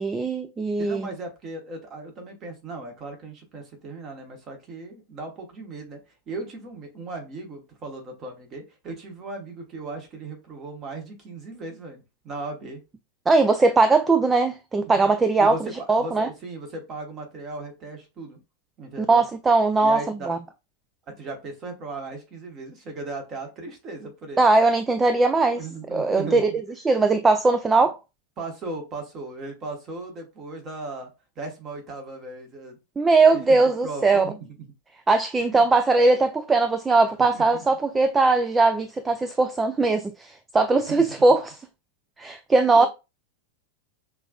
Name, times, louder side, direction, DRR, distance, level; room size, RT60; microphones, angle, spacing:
voice 1, 0.0-1.1 13.3-16.3 19.0-20.4 24.4-25.6 25.9-26.5 26.8-28.0 33.0-34.3 35.1-41.6 42.2-42.9, right 3 dB, 15° right, 0.3 m, -20 dB
voice 2, 0.8-6.0 6.3-12.8 14.8-15.1 15.4-18.4 18.8-19.2 19.8-20.3 21.2-24.5 25.5-26.4 28.4-31.1 31.4-32.8 33.3-34.7 35.4-35.7 37.3-37.7 40.9-41.2 42.8-42.9, right 3 dB, 30° right, 1.2 m, -37 dB
5.6 x 2.5 x 2.3 m
figure-of-eight pair, 90°, 0 cm